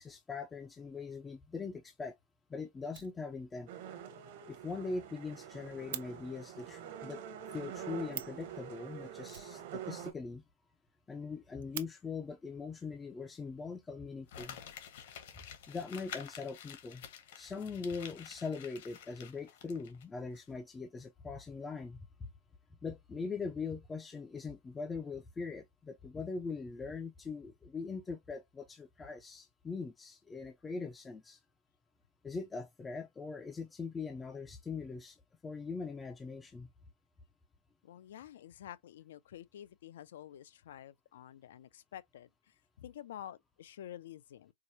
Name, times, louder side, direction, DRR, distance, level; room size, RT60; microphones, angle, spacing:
voice 1, 0.0-2.2 2.5-3.7 4.5-7.2 7.5-10.4 11.1-14.6 15.7-17.0 17.4-22.0 22.8-31.4 32.2-36.7, left 4 dB, 10° left, 0.4 m, -41 dB
Fire, 2.5-2.6 2.8-3.7 4.0-4.1 4.4-4.5 4.8-4.9 5.1-6.1 7.8-7.9 8.1-8.5 9.3-10.2 10.5-10.6 10.9-11.0 11.4-11.9 12.9-13.0 13.7-14.3, right 11 dB, 80° right, 0.5 m, -46 dB
sound 1, 3.7-10.1, right 9 dB, 50° right, 0.9 m, -46 dB
Crumpling crinkling, 14.3-20.0 20.4-20.5, left 9 dB, 60° left, 1.0 m, -49 dB
voice 2, 37.8-44.5, left 11 dB, 75° left, 0.5 m, -49 dB
4.7 x 2.0 x 2.6 m
supercardioid pair, 175°, 0 cm